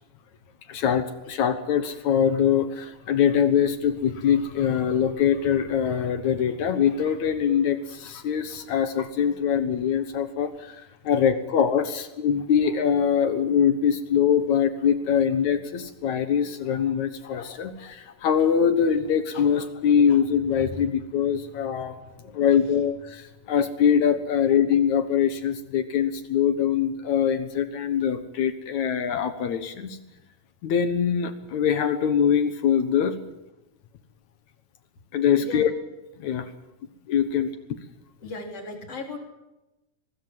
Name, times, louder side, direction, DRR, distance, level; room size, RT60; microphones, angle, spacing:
voice 1, 0.7-22.0 22.3-30.0 30.6-33.2 35.1-35.7 36.2-36.5 37.1-37.8, left 8 dB, 65° left, 10 dB, 2.5 m, -23 dB
voice 2, 35.4-35.7 38.2-39.2, left 2 dB, 45° left, 3 dB, 4.8 m, -36 dB
24.0 x 21.0 x 7.5 m, 0.96 s
omnidirectional pair, 3.9 m